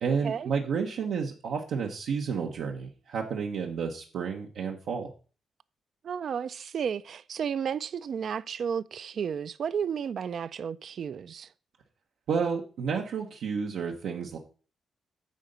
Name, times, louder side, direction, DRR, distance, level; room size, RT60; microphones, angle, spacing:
voice 1, 0.0-5.1 12.3-14.4, right 6 dB, 85° right, 0.9 m, -31 dB
voice 2, 6.0-11.5, right 7 dB, 65° right, 0.4 m, -32 dB
9.2 x 3.9 x 6.6 m
cardioid pair, 105°, 0 cm